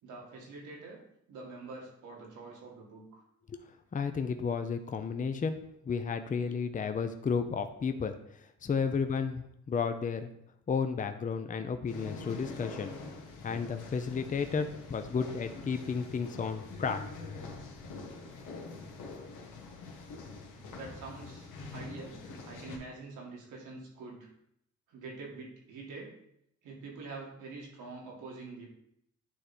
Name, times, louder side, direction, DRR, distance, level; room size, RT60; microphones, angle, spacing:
voice 1, 0.0-1.0 1.3-3.2 20.6-22.2 22.5-24.3 24.9-26.1 26.6-28.7, right 3 dB, 85° right, -1 dB, 2.0 m, -45 dB
voice 2, 3.9-5.6 5.8-10.3 10.7-12.9 13.4-17.0, left 5 dB, 25° left, 8 dB, 0.6 m, -32 dB
sound 1, 11.9-22.8, left 3 dB, 85° left, 1.4 m, -45 dB
9.3 x 3.2 x 4.3 m, 0.75 s
cardioid pair, 90°, 30 cm